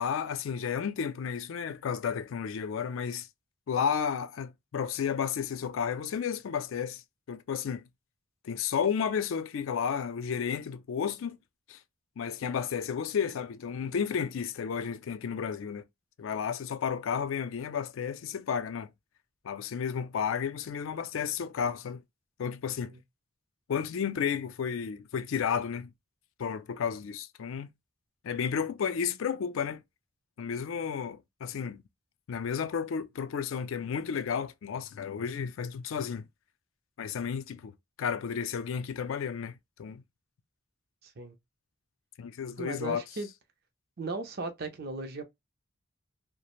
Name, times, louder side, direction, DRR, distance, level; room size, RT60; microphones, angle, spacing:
voice 1, 0.0-3.3 3.7-7.0 7.3-7.8 8.4-11.4 11.7-11.8 12.2-15.8 16.2-18.9 19.4-22.0 22.4-22.9 23.7-25.9 26.4-27.7 28.2-29.8 30.4-31.8 32.3-36.3 37.0-40.0 42.2-43.0, left 7 dB, 70° left, 0.4 m, -32 dB
voice 2, 41.0-41.4 42.6-43.3 44.0-45.2, right 3 dB, 45° right, 0.5 m, -37 dB
2.4 x 2.0 x 2.9 m
head